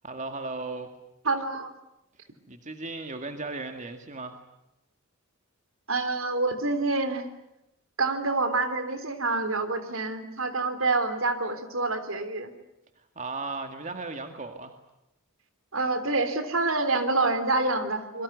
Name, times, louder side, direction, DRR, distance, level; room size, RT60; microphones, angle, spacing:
voice 1, 0.0-0.9 2.5-4.4 13.2-14.7, right 3 dB, 35° right, 6 dB, 2.0 m, -36 dB
voice 2, 1.3-1.7 5.9-7.2 8.0-12.5 15.7-18.2, right 3 dB, 70° right, 10 dB, 3.5 m, -27 dB
27.0 x 23.0 x 8.2 m, 0.87 s
head